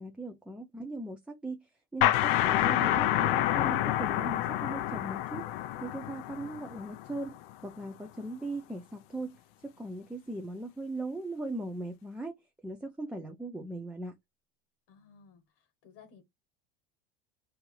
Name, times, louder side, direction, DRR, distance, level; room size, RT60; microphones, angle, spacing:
voice 1, 0.0-5.4 5.8-7.4 7.6-9.4 9.6-12.3 12.6-14.2, right 2 dB, 5° right, 0.4 m, -39 dB
sound 1, 2.0-7.4, left 13 dB, 75° left, 0.5 m, -28 dB
voice 2, 14.9-15.4 15.8-16.2, left 6 dB, 55° left, 1.1 m, -56 dB
2.7 x 2.6 x 3.9 m
supercardioid pair, 120°, 29 cm